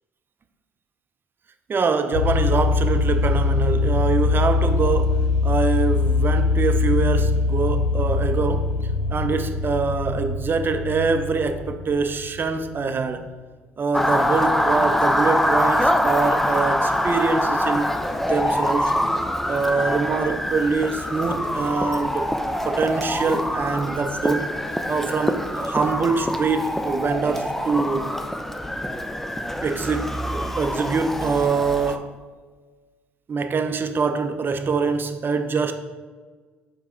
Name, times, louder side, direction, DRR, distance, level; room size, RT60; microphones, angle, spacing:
voice 1, 1.7-8.7 9.1-13.3 13.8-18.9 19.5-22.3 22.6-24.5 24.9-28.1 29.6-32.2 33.3-35.7, right 4 dB, 40° right, 0.6 m, -24 dB
sound 1, 2.1-12.8, left 3 dB, 85° left, 0.5 m, -22 dB
Motor vehicle (road) / Siren, 13.9-32.0, left 1 dB, 5° left, 0.5 m, -24 dB
4.7 x 4.6 x 4.4 m
hypercardioid pair, 60°, 5 cm